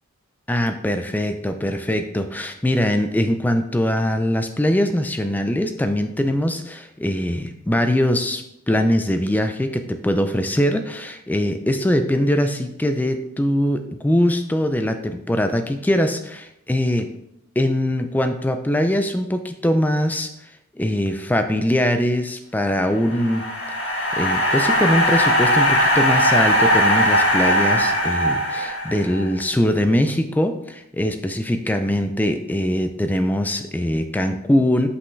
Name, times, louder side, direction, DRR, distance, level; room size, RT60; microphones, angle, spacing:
voice 1, 0.5-17.1 17.6-20.3 20.8-23.4 24.2-34.9, left 1 dB, 10° left, 7 dB, 0.3 m, -22 dB
sound 1, 22.9-29.3, equal, 60° left, 1.5 m, -19 dB
5.5 x 5.3 x 3.2 m, 0.82 s
head